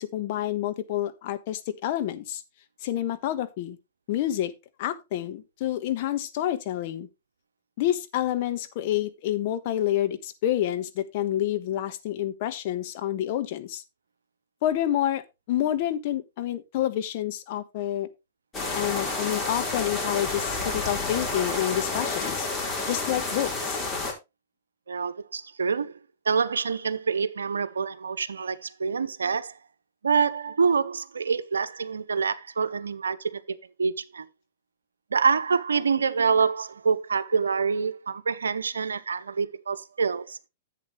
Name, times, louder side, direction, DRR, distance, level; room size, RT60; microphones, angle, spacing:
voice 1, 0.0-2.4 2.8-3.8 4.1-4.5 4.8-7.1 7.8-13.8 14.6-15.2 15.5-18.1 18.7-22.5 22.9-23.8, left 12 dB, 50° left, 1.3 m, -28 dB
sound 1, 18.5-24.1, left 3 dB, 20° left, 4.3 m, -30 dB
voice 2, 24.9-26.0 26.2-29.5 30.0-34.3 35.1-40.4, right 5 dB, 85° right, 0.8 m, -26 dB
11.0 x 8.2 x 3.2 m
hypercardioid pair, 115°, 0 cm